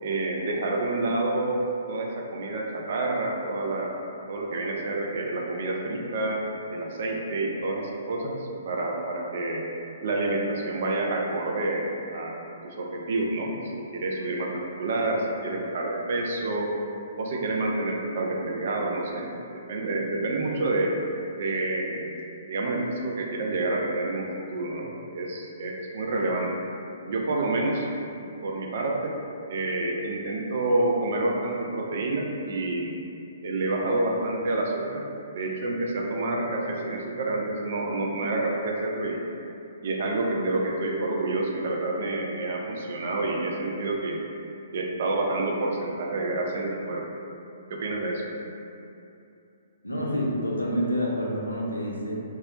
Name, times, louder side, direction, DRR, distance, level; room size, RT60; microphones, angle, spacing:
voice 1, 0.0-3.9 4.3-9.6 10.0-12.4 12.6-16.7 17.2-20.9 21.4-22.1 22.5-26.5 27.1-27.9 28.4-29.2 29.5-32.9 33.4-35.0 35.3-39.2 39.8-44.2 44.7-47.1 47.7-48.3, right 2 dB, 50° right, 0 dB, 0.3 m, -28 dB
voice 2, 49.8-52.2, equal, 85° left, -4 dB, 0.4 m, -28 dB
2.3 x 2.0 x 2.7 m, 2.7 s
figure-of-eight pair, 120°, 0 cm